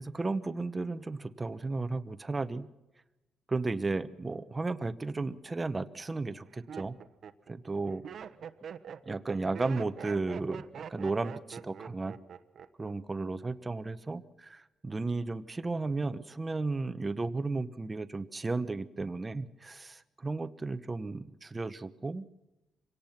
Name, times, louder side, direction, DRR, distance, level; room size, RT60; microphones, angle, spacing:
voice 1, 0.0-2.7 3.5-7.0 7.5-8.0 9.1-12.1 12.8-22.3, right 3 dB, 20° right, 12 dB, 1.0 m, -34 dB
Laughter, 5.3-5.7 6.3-12.9 13.2-13.7, right 7 dB, 55° right, 1.1 m, -45 dB
25.5 x 18.0 x 5.8 m, 0.98 s
cardioid pair, 130°, 0 cm